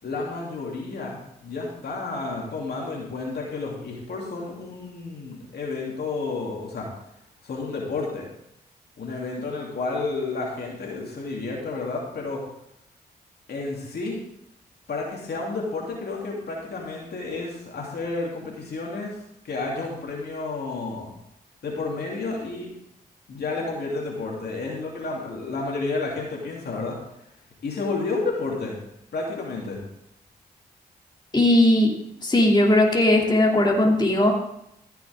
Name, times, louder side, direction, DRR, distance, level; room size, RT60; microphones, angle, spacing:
voice 1, 0.0-6.9 7.4-8.3 9.0-12.4 13.5-14.2 14.9-19.2 19.4-21.1 21.6-22.7 23.3-27.0 27.6-28.8 29.1-29.8, left 3 dB, 70° left, -2 dB, 2.9 m, -31 dB
voice 2, 31.3-31.9 32.2-34.3, left 1 dB, 25° left, -1 dB, 2.5 m, -18 dB
15.0 x 6.8 x 3.6 m, 0.77 s
cardioid pair, 50°, 17 cm